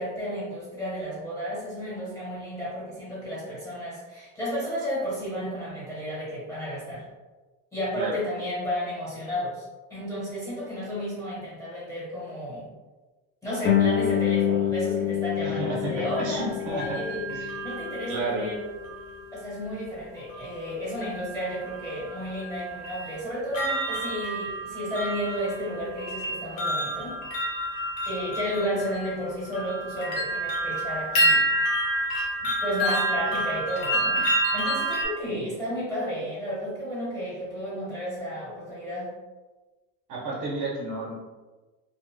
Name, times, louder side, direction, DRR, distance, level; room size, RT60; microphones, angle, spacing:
voice 1, 0.0-7.0 7.7-12.7 13.4-17.2 17.6-18.6 19.3-27.2 27.5-27.6 28.1-31.5 32.4-39.2, equal, 10° left, -9 dB, 1.3 m, -32 dB
Guitar, 13.6-19.0, left 10 dB, 30° left, 0.5 m, -27 dB
voice 2, 15.4-16.9 17.3-17.6 18.1-18.5 35.3-35.4 40.1-41.1, right 3 dB, 55° right, -4 dB, 0.8 m, -32 dB
sound 1, 16.4-19.1 20.3-20.7 21.0-35.0, right 1 dB, 75° left, 1.0 m, -29 dB
2.8 x 2.1 x 3.1 m, 1.2 s
cardioid pair, 150°, 37 cm